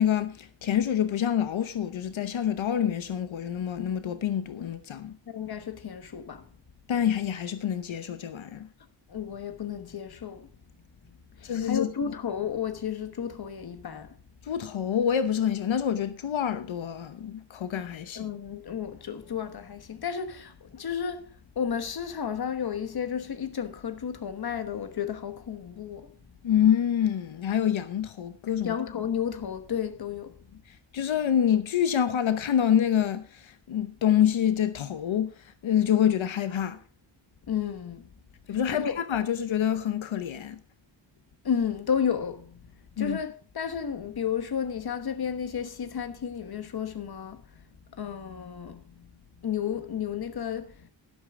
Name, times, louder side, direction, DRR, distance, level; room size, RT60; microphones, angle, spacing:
voice 1, 0.0-5.1 6.9-8.7 11.4-11.9 14.4-18.3 26.4-28.7 30.9-36.8 38.5-40.6 43.0-43.2, left 9 dB, 85° left, 0.9 m, -26 dB
voice 2, 5.3-6.5 9.1-10.5 11.1-14.1 18.1-26.1 28.6-30.4 37.5-38.1 38.5-39.0 41.4-42.7 43.0-47.6 47.9-49.1 49.4-50.9, left 7 dB, 55° left, 1.2 m, -32 dB
12.0 x 12.0 x 3.6 m
wide cardioid pair, 160°, 46 cm